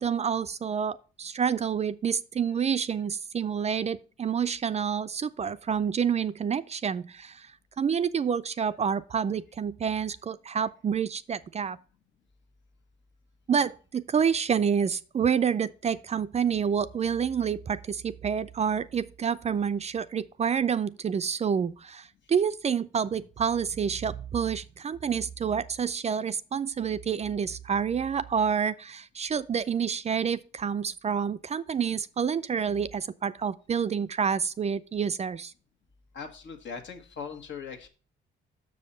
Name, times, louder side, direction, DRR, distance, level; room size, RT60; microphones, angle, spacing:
voice 1, 0.0-7.5 7.8-11.8 13.5-35.5, right 7 dB, 35° right, 0.4 m, -28 dB
voice 2, 36.1-37.9, left 6 dB, 70° left, 1.5 m, -40 dB
6.5 x 5.3 x 5.5 m
cardioid pair, 90°, 20 cm